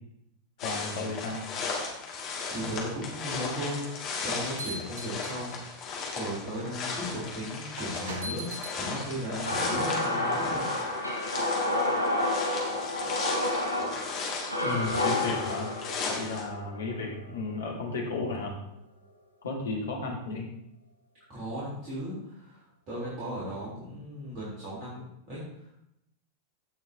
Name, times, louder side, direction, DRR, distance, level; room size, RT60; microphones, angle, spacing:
voice 1, 0.6-1.4 14.6-15.7 16.1-18.6 19.4-20.5, left 3 dB, 65° left, 0 dB, 2.2 m, -33 dB
sound 1, 0.6-16.4, left 4 dB, 40° left, 2.3 m, -36 dB
voice 2, 2.1-5.6 6.1-10.7 21.3-25.8, equal, 40° right, -9 dB, 3.7 m, -36 dB
sound 2, 4.0-5.8 6.6-6.7 7.8-8.8, right 1 dB, 60° right, 1.4 m, -40 dB
sound 3, 9.4-17.6, left 2 dB, 85° right, 2.4 m, -30 dB
16.0 x 5.8 x 2.9 m, 0.78 s
figure-of-eight pair, 90°, 0 cm